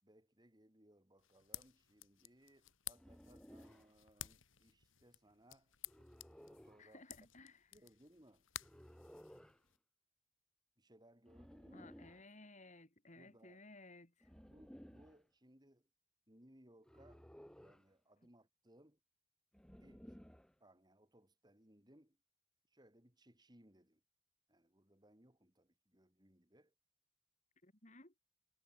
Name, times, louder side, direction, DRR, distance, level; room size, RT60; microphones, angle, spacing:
voice 1, 0.0-5.7 6.5-7.0 7.7-8.5 10.8-11.9 13.2-13.7 14.4-15.9 16.3-17.3 17.6-19.0 19.8-20.2 20.6-22.2 22.7-24.0 24.5-26.7, right 1 dB, 20° right, 3.8 m, -66 dB
sound 1, 1.2-9.8, left 12 dB, 70° left, 2.8 m, -54 dB
sound 2, 2.9-3.9 5.9-6.8 8.6-9.6 11.2-12.3 14.2-15.2 16.8-17.9 19.5-20.5, equal, 5° left, 1.0 m, -58 dB
voice 2, 6.8-7.7 11.7-14.3 27.6-28.1, left 2 dB, 35° left, 4.4 m, -58 dB
head